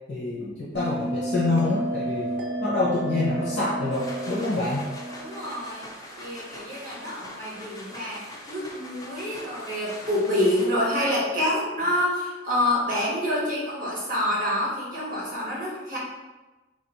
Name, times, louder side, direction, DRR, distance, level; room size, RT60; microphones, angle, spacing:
voice 1, 0.1-2.3 2.6-4.8, left 2 dB, 80° left, -7 dB, 0.7 m, -26 dB
Bell, 0.7-5.8, right 1 dB, 65° right, 0.3 m, -31 dB
sound 1, 3.7-11.0, left 1 dB, 20° left, 0.4 m, -42 dB
voice 2, 5.2-5.8 6.2-8.2 8.5-16.0, left 1 dB, 45° right, -5 dB, 1.2 m, -27 dB
3.0 x 2.5 x 4.1 m, 1.2 s
head